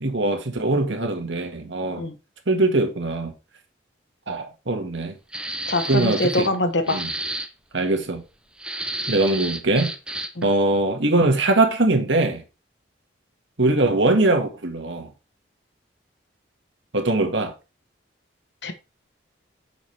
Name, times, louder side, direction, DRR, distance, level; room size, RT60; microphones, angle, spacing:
voice 1, 0.0-2.1 2.5-3.3 4.3-5.1 5.9-6.5 6.9-7.1 7.7-8.2 9.1-9.9 10.4-12.4 13.6-15.1 16.9-17.5, right 2 dB, 75° right, 1.8 m, -21 dB
sound 1, 5.3-6.6 6.9-7.5 8.6-10.4, right 1 dB, 5° right, 0.6 m, -31 dB
voice 2, 5.7-7.0 10.4-10.5 18.6-18.7, left 1 dB, 65° left, 1.2 m, -23 dB
9.0 x 6.2 x 3.4 m
head